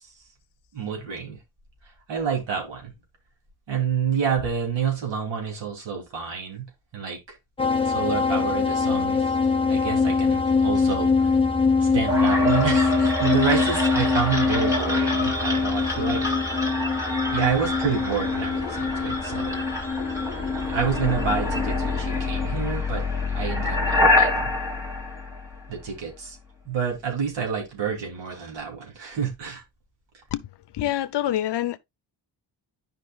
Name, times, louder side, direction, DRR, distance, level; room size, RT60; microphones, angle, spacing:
voice 1, 0.7-1.4 2.1-2.9 3.7-6.6 6.9-7.4 7.8-9.2 9.7-11.3 11.8-16.2 17.3-19.6 20.7-24.5 25.7-26.4 26.6-29.6, right 6 dB, 80° right, 3.1 m, -28 dB
sound 1, 7.6-22.5, left 4 dB, 10° left, 0.8 m, -24 dB
sound 2, 12.1-26.0, left 2 dB, 5° right, 1.7 m, -27 dB
voice 2, 30.7-31.8, left 12 dB, 70° left, 0.7 m, -26 dB
11.5 x 5.3 x 2.3 m
wide cardioid pair, 145°, 43 cm